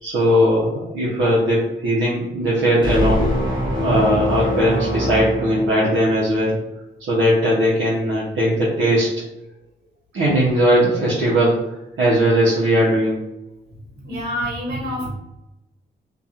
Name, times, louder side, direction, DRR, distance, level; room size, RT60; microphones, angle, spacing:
voice 1, 0.0-3.3 3.7-6.6 7.1-9.1 10.1-11.6 12.0-13.2, equal, 75° right, -7 dB, 0.7 m, -18 dB
sound 1, 2.8-6.3, left 1 dB, 25° right, 1.2 m, -23 dB
voice 2, 13.7-15.1, equal, 55° right, -5 dB, 1.5 m, -28 dB
2.8 x 2.3 x 2.4 m, 0.92 s
cardioid pair, 70°, 20 cm